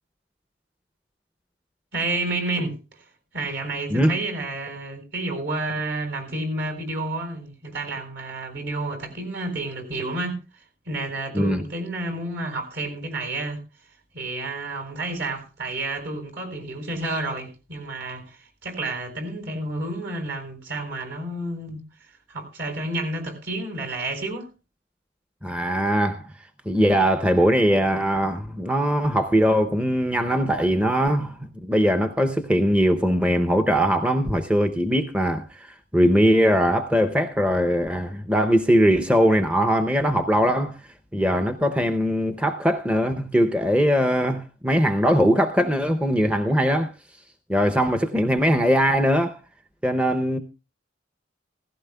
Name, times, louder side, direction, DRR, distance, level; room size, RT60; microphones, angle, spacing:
voice 1, 1.9-3.0 3.3-13.6 14.1-21.8 22.3-24.5, right 2 dB, 60° right, 4.2 m, -30 dB
voice 2, 25.4-26.3 26.7-40.8 41.1-46.9 47.5-49.4 49.8-50.4, equal, 5° right, 0.6 m, -21 dB
16.5 x 15.5 x 2.2 m
head